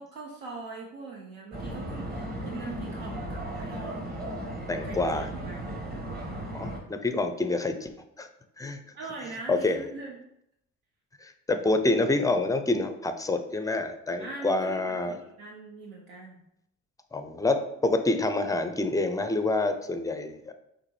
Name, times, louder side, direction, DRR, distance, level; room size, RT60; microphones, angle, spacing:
voice 1, 0.0-4.5 4.8-5.7 8.9-10.2 14.2-16.4, right 3 dB, 65° right, -1 dB, 0.8 m, -42 dB
sound 1, 1.5-6.8, right 1 dB, 25° right, 1.3 m, -36 dB
voice 2, 4.7-5.3 6.5-7.9 8.2-8.3 8.6-8.8 9.5-9.8 11.2-15.2 17.1-20.5, left 2 dB, 10° left, 7 dB, 0.5 m, -27 dB
6.5 x 2.5 x 3.2 m, 0.80 s
hypercardioid pair, 55°, 39 cm